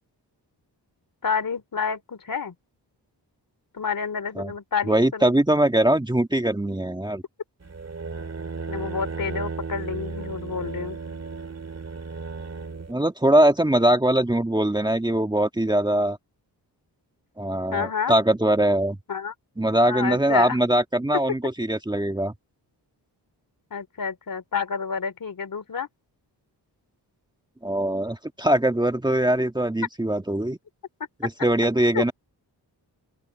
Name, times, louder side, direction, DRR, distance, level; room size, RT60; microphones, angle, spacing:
voice 1, 1.2-2.5 3.7-5.3 8.7-11.0 17.7-18.2 19.1-19.3 19.8-20.6 23.7-25.9 31.9-32.1, left 6 dB, 55° left, 3.0 m, -29 dB
voice 2, 4.9-7.2 12.9-16.2 17.4-19.0 19.6-22.3 27.6-30.6 31.4-32.1, right 1 dB, 10° right, 1.6 m, -22 dB
sound 1, 7.6-12.9, right 4 dB, 40° right, 2.2 m, -34 dB
open air
wide cardioid pair, 95°, 41 cm